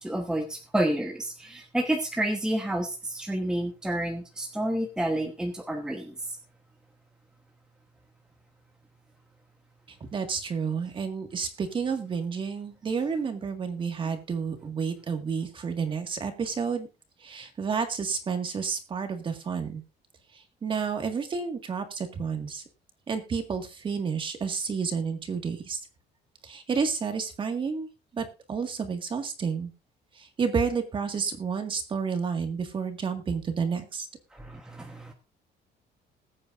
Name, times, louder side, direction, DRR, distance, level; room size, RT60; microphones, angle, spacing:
voice 1, 0.0-6.4 34.3-35.1, right 1 dB, 5° right, 3 dB, 1.1 m, -30 dB
voice 2, 9.9-16.9 17.2-19.8 20.3-22.6 23.1-25.8 26.4-27.9 28.1-29.7 30.1-34.1, right 5 dB, 25° right, 6 dB, 1.9 m, -30 dB
20.5 x 8.6 x 2.6 m, 0.29 s
cardioid pair, 180°, 19 cm